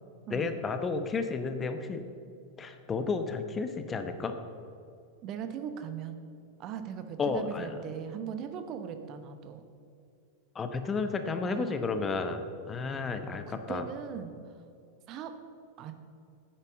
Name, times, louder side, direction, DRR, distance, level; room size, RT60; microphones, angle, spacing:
voice 1, 0.3-2.0 2.6-4.4 7.2-7.7 10.5-13.8, left 4 dB, 20° left, 8 dB, 0.9 m, -32 dB
voice 2, 5.2-6.2 6.6-9.6 11.4-11.8 13.3-14.4 15.1-15.3 15.8-15.9, right 8 dB, 35° right, 9 dB, 0.9 m, -39 dB
10.0 x 8.8 x 7.3 m, 2.4 s
figure-of-eight pair, 90°, 0 cm